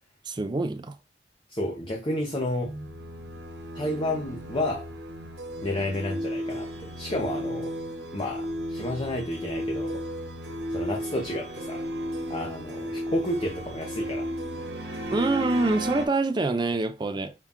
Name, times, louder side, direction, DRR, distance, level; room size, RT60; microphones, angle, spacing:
voice 1, 0.3-1.0 2.6-2.9 15.1-17.3, right 2 dB, 25° right, 0.4 m, -26 dB
voice 2, 1.5-2.7 3.7-4.9 5.6-7.7 8.1-10.0 10.7-11.8 12.3-14.3, left 1 dB, 30° left, 0.7 m, -31 dB
sound 1, 2.6-16.1, equal, 75° right, 1.1 m, -34 dB
5.7 x 2.4 x 3.5 m
head